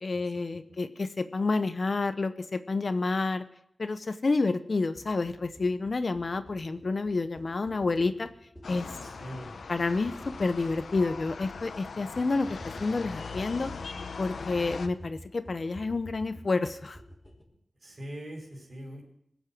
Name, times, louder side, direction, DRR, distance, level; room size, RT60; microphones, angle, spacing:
voice 1, 0.0-3.4 3.8-8.3 8.7-8.9 9.7-13.7 14.2-17.0, left 3 dB, 55° left, 11 dB, 0.8 m, -29 dB
sound 1, 5.0-17.4, equal, 10° left, 3.6 m, -49 dB
sound 2, 8.6-14.9, left 5 dB, 90° left, 0.8 m, -40 dB
voice 2, 9.0-9.5 17.8-19.0, equal, 50° right, 1 dB, 5.1 m, -42 dB
22.0 x 8.1 x 6.1 m, 0.75 s
wide cardioid pair, 85°, 0 cm